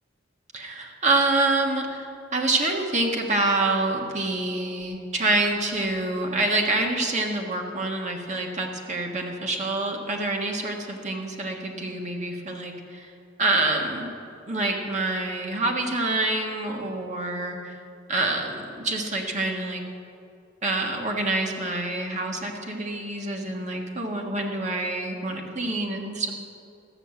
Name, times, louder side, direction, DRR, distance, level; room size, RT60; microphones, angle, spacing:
voice 1, 0.5-13.1 13.4-14.1 14.5-17.8 18.1-19.8 20.6-26.4, right 2 dB, 35° right, 1 dB, 1.5 m, -26 dB
14.0 x 6.6 x 7.6 m, 2.5 s
head